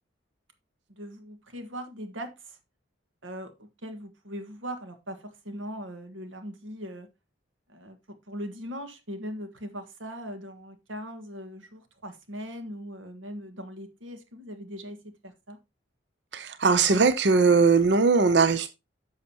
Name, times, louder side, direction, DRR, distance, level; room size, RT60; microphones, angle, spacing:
voice 1, 0.9-2.6 3.2-7.1 7.7-15.6, equal, 80° right, 1.6 m, -40 dB
voice 2, 16.3-18.7, right 4 dB, 60° right, 0.6 m, -20 dB
10.5 x 6.5 x 2.9 m
head